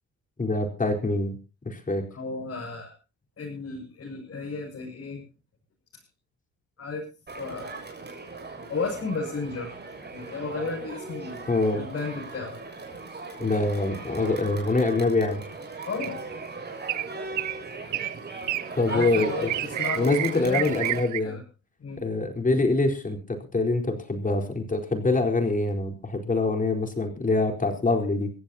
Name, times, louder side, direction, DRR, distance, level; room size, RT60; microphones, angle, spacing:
voice 1, 0.4-1.4 1.6-2.0 11.5-11.8 13.4-15.4 18.8-19.5 19.9-21.4 22.0-28.3, left 2 dB, 25° left, 4 dB, 4.2 m, -25 dB
voice 2, 2.1-2.9 3.4-5.2 6.8-7.1 7.4-7.8 8.7-9.7 10.0-12.6 15.8-16.2 18.9-19.5 19.8-21.4 21.8-22.0, left 4 dB, 50° left, -2 dB, 6.4 m, -33 dB
Crowd, 7.3-21.0, right 3 dB, 35° right, 6.7 m, -38 dB
sound 1, 16.0-16.3 16.9-17.1 17.4-17.6 17.9-18.1 18.5-18.7 19.0-21.2, right 15 dB, 75° right, 0.7 m, -30 dB
23.5 x 15.5 x 2.9 m, 0.32 s
cardioid pair, 90°, 30 cm